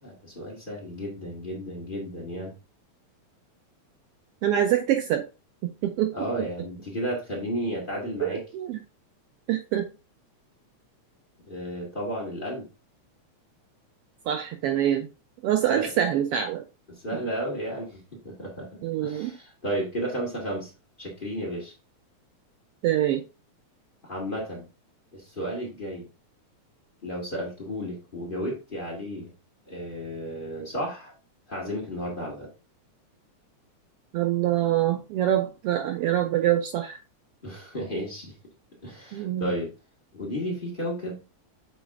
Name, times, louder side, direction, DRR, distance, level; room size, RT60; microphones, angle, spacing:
voice 1, 0.0-2.5 6.1-8.4 11.4-12.7 15.7-15.8 16.9-20.7 21.0-21.7 24.0-24.7 25.1-26.1 27.0-29.3 29.7-31.1 31.5-32.5 37.4-38.3 38.8-39.7 40.1-41.2, equal, 20° left, -3 dB, 1.9 m, -33 dB
voice 2, 4.4-5.2 5.6-6.1 8.2-8.8 9.5-9.9 14.3-15.1 15.4-16.6 17.1-17.2 18.8-19.3 22.8-23.2 34.1-37.0 39.1-39.5, right 11 dB, 90° right, 6 dB, 1.3 m, -25 dB
7.3 x 4.1 x 3.5 m, 0.30 s
omnidirectional pair, 3.4 m